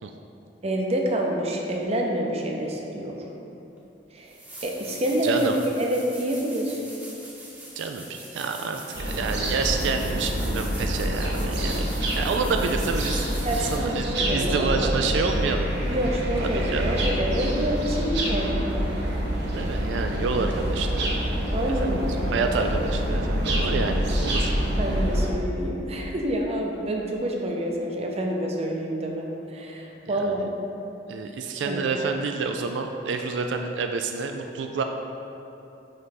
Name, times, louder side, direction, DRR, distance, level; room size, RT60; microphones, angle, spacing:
voice 1, 0.6-3.2 4.1-4.4 4.6-6.8 13.4-15.1 15.9-18.9 21.5-22.5 23.7-24.0 24.8-30.5 31.6-31.8, right 1 dB, 35° right, 0 dB, 0.6 m, -28 dB
sound 1, 3.8-3.9 4.3-14.0 16.8-16.9, right 1 dB, 10° right, 0.8 m, -42 dB
voice 2, 5.2-5.6 7.8-11.9 12.1-13.3 13.6-15.7 16.4-17.0 19.5-21.2 21.8-24.5 30.1-30.5 31.1-34.8, right 4 dB, 85° right, 4 dB, 0.3 m, -28 dB
sound 2, 8.9-25.3, equal, 65° right, 0.8 m, -26 dB
5.3 x 4.6 x 4.1 m, 3.0 s
head